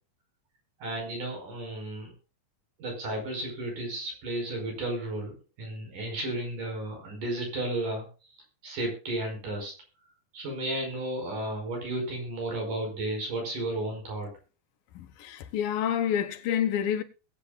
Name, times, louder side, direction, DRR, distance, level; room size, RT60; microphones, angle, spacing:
voice 1, 0.8-2.1 2.8-8.1 8.6-9.7 10.3-14.3, right 1 dB, 70° right, 6.8 m, -33 dB
voice 2, 15.0-17.0, left 9 dB, 90° left, 3.0 m, -28 dB
21.0 x 8.8 x 2.3 m
omnidirectional pair, 3.9 m